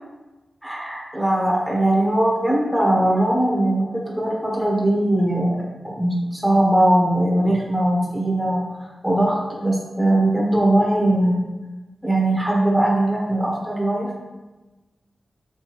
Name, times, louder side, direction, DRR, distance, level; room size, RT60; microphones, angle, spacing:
voice 1, 0.6-11.4 12.0-14.2, right 1 dB, ahead, -4 dB, 0.8 m, -20 dB
3.2 x 3.2 x 2.9 m, 1.1 s
wide cardioid pair, 80°, 0 cm